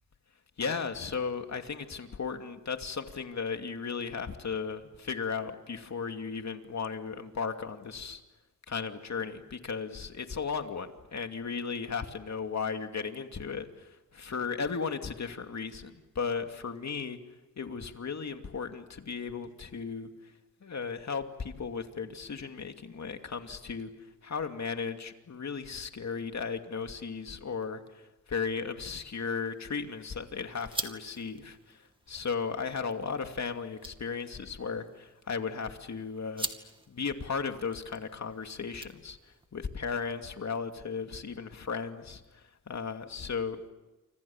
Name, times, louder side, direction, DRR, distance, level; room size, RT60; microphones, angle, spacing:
voice 1, 0.6-8.2 8.7-17.2 17.6-20.3 20.6-23.9 24.2-27.8 28.3-36.5 36.9-39.2 39.5-43.7, left 5 dB, 45° left, 6 dB, 2.6 m, -35 dB
sound 1, 29.1-39.5, right 2 dB, 15° right, 2.4 m, -45 dB
28.5 x 26.0 x 7.3 m, 1.1 s
cardioid pair, 80°, 37 cm